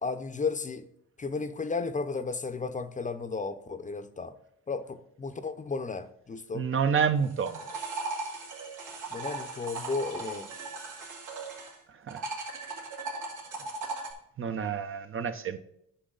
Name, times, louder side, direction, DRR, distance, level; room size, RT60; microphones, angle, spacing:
voice 1, 0.0-0.9 1.2-4.3 4.7-6.7 9.1-10.5, left 4 dB, 25° left, 0.7 m, -34 dB
voice 2, 6.5-7.6 12.1-12.2 14.4-15.6, right 6 dB, 45° right, 0.7 m, -28 dB
sound 1, 7.2-11.7 12.1-14.1, right 3 dB, 85° right, 2.3 m, -37 dB
10.0 x 5.6 x 3.9 m
cardioid pair, 90°, 30 cm